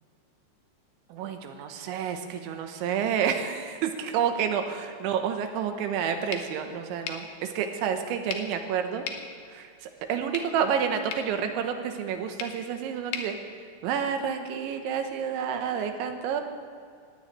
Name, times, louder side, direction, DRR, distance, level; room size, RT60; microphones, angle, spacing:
voice 1, 1.1-9.1 9.5-13.4 13.8-16.4, right 7 dB, 85° right, 6 dB, 3.3 m, -29 dB
sound 1, 6.3-14.4, left 6 dB, 70° left, 2.8 m, -42 dB
19.0 x 17.5 x 3.2 m, 2.3 s
omnidirectional pair, 5.4 m